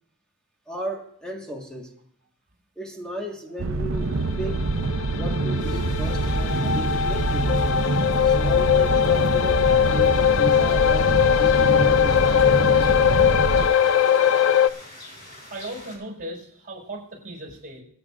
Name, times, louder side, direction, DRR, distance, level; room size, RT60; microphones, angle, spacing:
voice 1, 0.7-1.9 2.7-7.6 8.2-13.5, right 1 dB, 5° left, 0 dB, 1.5 m, -35 dB
sound 1, 3.6-13.7, right 2 dB, 85° right, 0.7 m, -25 dB
sound 2, 4.3-14.7, left 8 dB, 75° left, 0.4 m, -20 dB
sound 3, 5.6-16.0, left 1 dB, 55° left, 4.4 m, -45 dB
voice 2, 15.5-17.8, right 1 dB, 45° right, -2 dB, 5.3 m, -37 dB
25.5 x 8.9 x 2.4 m, 0.69 s
head